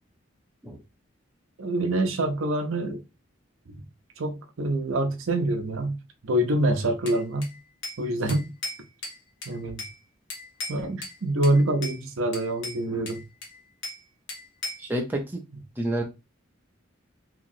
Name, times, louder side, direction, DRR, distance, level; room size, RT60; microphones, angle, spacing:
voice 1, 1.6-3.0 3.7-3.8 4.2-6.0 6.2-7.5 8.0-8.5 9.5-9.8 10.7-13.2, right 1 dB, 80° right, 0.6 m, -26 dB
Bell / Glass, 7.1-8.0 8.3-10.0 10.3-11.2 11.4-12.0 12.3-14.0 14.3-14.9, left 2 dB, 65° left, 1.1 m, -37 dB
voice 2, 14.8-15.4 15.8-16.0, right 1 dB, 10° right, 0.5 m, -29 dB
2.9 x 2.9 x 2.5 m
head